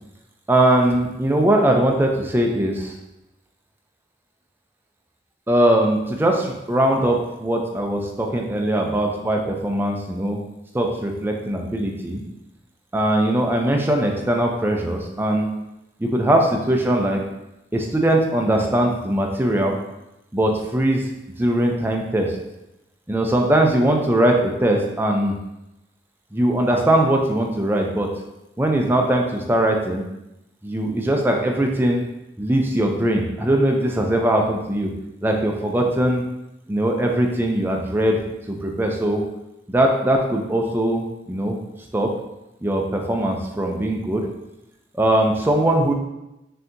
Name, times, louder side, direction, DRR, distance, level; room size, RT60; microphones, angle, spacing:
voice 1, 0.5-2.9 5.5-10.4 10.7-12.2 12.9-15.5 16.0-17.2 17.7-19.8 20.3-21.0 21.4-22.4 23.1-25.3 26.3-28.1 28.6-30.0 30.6-32.0 32.4-34.9 35.2-36.2 36.7-38.2 38.5-39.2 39.7-41.6 41.9-42.1 42.6-44.2 44.9-45.9, right 1 dB, 10° right, 1 dB, 0.4 m, -20 dB
5.5 x 2.8 x 2.6 m, 0.93 s
head